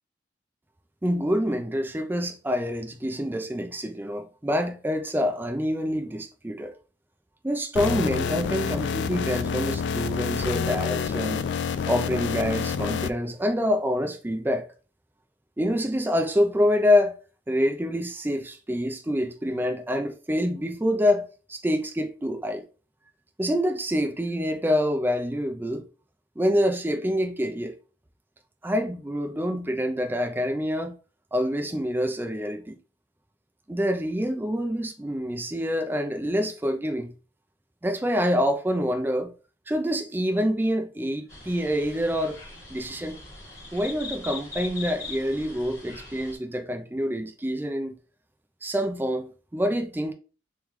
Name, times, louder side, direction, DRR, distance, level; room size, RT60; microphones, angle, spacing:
voice 1, 1.0-6.7 7.4-11.5 11.9-14.6 15.6-17.1 17.5-22.6 23.4-25.8 26.4-27.7 28.6-31.0 31.3-32.8 33.7-37.1 37.8-39.3 39.7-42.4 42.7-43.2 43.7-47.9 48.6-50.1, equal, 10° right, 0.4 m, -26 dB
sound 1, 7.8-13.1, left 6 dB, 70° left, 0.3 m, -28 dB
sound 2, 41.3-46.4, left 3 dB, 15° left, 1.8 m, -41 dB
3.2 x 3.0 x 3.5 m
head